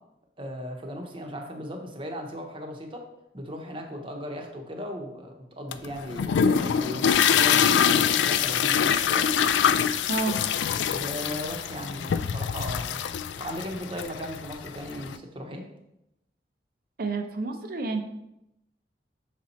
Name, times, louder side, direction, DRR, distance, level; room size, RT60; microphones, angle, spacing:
voice 1, 0.4-3.0 3.3-9.3 10.9-13.0 13.4-15.6, equal, 30° right, 2 dB, 0.9 m, -37 dB
sound 1, 5.7-15.2, left 8 dB, 80° left, 0.3 m, -24 dB
voice 2, 10.1-10.4 17.0-18.0, right 3 dB, 55° right, 5 dB, 0.6 m, -29 dB
6.1 x 4.2 x 4.2 m, 0.85 s
head